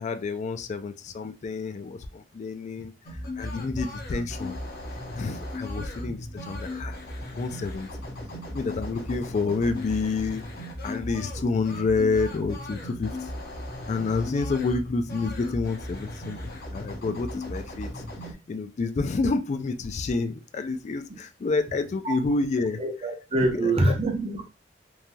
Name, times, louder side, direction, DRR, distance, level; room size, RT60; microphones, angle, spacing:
voice 1, 0.0-2.9 3.4-4.6 5.1-7.0 7.4-7.9 8.5-10.4 10.8-13.2 13.9-17.9 18.5-22.8 23.5-23.9, left 4 dB, 40° left, 9 dB, 0.3 m, -28 dB
sound 1, 3.1-18.3, left 1 dB, 60° left, 0.9 m, -36 dB
voice 2, 5.8-6.2 21.1-21.2 22.0-22.1 22.8-24.4, right 2 dB, 35° right, 4 dB, 0.6 m, -26 dB
3.1 x 2.5 x 2.2 m, 0.30 s
head